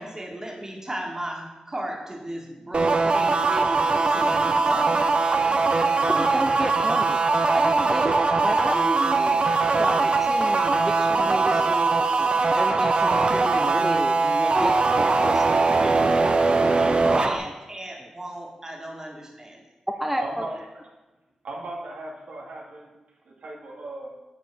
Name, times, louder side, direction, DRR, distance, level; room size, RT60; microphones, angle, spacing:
voice 1, 0.0-6.4 12.8-12.9 13.3-13.4 14.4-14.6 15.8-16.3 16.7-19.6, right 1 dB, 25° right, 0 dB, 2.2 m, -36 dB
sound 1, 2.7-17.4, right 3 dB, 50° right, 0.8 m, -21 dB
voice 2, 6.1-9.5 9.7-16.2 17.0-17.2 17.4-17.5 18.0-18.1 20.0-20.5, equal, 5° right, 4 dB, 0.6 m, -32 dB
voice 3, 20.2-20.7 21.4-22.9 23.2-24.1, right 2 dB, 80° right, -2 dB, 2.1 m, -37 dB
8.9 x 4.6 x 6.0 m, 1.1 s
cardioid pair, 55°, 2 cm